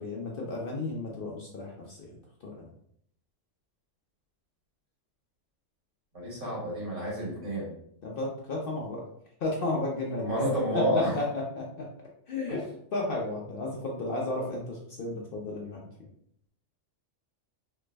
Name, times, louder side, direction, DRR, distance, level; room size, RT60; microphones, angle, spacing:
voice 1, 0.0-2.1 2.6-2.7 8.0-9.0 9.4-10.4 10.7-11.2 11.6-11.8 12.3-12.6 12.9-15.8, left 2 dB, 55° left, -2 dB, 0.7 m, -33 dB
voice 2, 6.1-7.7 10.2-11.2 12.5-12.6, equal, 70° right, -5 dB, 1.7 m, -29 dB
3.3 x 2.0 x 3.2 m, 0.70 s
omnidirectional pair, 1.3 m